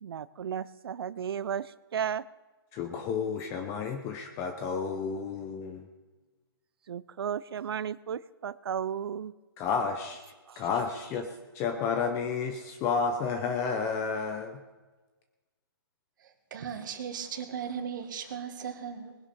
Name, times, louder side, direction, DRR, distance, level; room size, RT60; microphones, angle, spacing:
voice 1, 0.0-2.2 6.9-9.3 10.5-10.6, right 8 dB, 70° right, 19 dB, 0.5 m, -34 dB
voice 2, 2.7-5.9 9.6-10.2 10.6-11.3 11.5-14.6, left 5 dB, 20° left, 6 dB, 0.7 m, -31 dB
voice 3, 16.2-19.2, right 7 dB, 50° right, 5 dB, 1.9 m, -37 dB
20.0 x 10.5 x 4.3 m, 1.3 s
hypercardioid pair, 160°, 13 cm